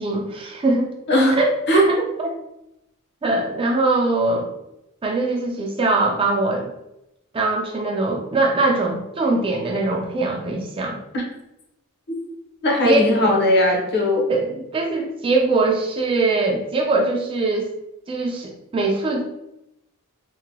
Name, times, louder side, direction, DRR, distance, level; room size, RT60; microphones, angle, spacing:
voice 1, 0.0-1.0 1.4-2.4 3.2-4.5 5.0-6.7 7.3-11.0 12.8-13.1 14.3-17.7 18.1-19.2, right 2 dB, 25° right, 1 dB, 0.3 m, -22 dB
voice 2, 12.6-14.3, left 1 dB, 50° left, -1 dB, 0.7 m, -18 dB
2.9 x 2.5 x 2.6 m, 0.86 s
head